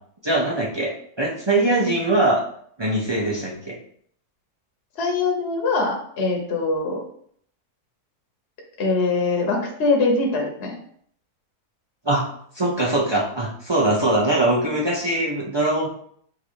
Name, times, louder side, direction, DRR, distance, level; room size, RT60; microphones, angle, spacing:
voice 1, 0.2-2.4 2.8-3.8 12.0-12.3 12.5-15.9, right 2 dB, 40° right, -4 dB, 0.3 m, -22 dB
voice 2, 5.0-7.0 8.8-10.7, left 3 dB, 45° left, 0 dB, 1.1 m, -22 dB
3.9 x 2.6 x 4.5 m, 0.63 s
omnidirectional pair, 1.6 m